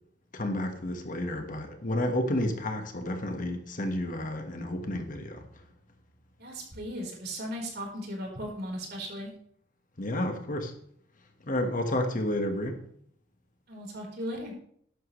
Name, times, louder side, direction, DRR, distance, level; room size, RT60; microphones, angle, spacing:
voice 1, 0.3-5.4 10.0-10.7 11.4-12.8, left 1 dB, 45° left, 1.6 m, -31 dB
voice 2, 6.4-9.3 13.7-14.5, equal, 55° right, 4.5 m, -37 dB
13.5 x 11.5 x 3.3 m
head